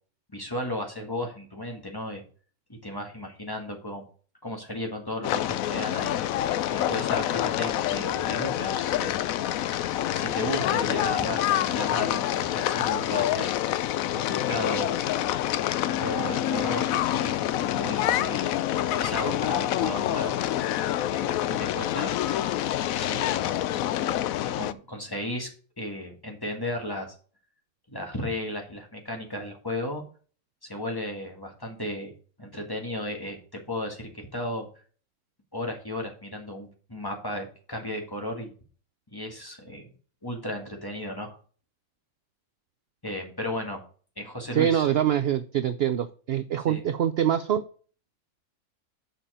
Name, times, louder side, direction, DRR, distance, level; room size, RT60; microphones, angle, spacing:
voice 1, 0.3-2.2 2.7-4.0 4.4-6.2 6.7-9.2 10.1-13.5 14.1-15.0 16.0-17.4 17.7-18.6 18.9-20.3 21.1-22.1 22.9-23.9 24.4-25.5 25.8-27.1 27.9-30.0 30.6-32.1 32.4-34.7 35.5-38.5 39.1-39.9 40.2-41.4 43.0-43.8 44.2-44.9 46.7-46.8, left 1 dB, 15° left, 2 dB, 1.7 m, -34 dB
sound 1, 5.2-24.7, left 12 dB, 70° left, 0.9 m, -27 dB
voice 2, 44.5-47.6, right 10 dB, 70° right, 12 dB, 0.6 m, -24 dB
7.2 x 5.7 x 5.0 m, 0.41 s
omnidirectional pair, 1.6 m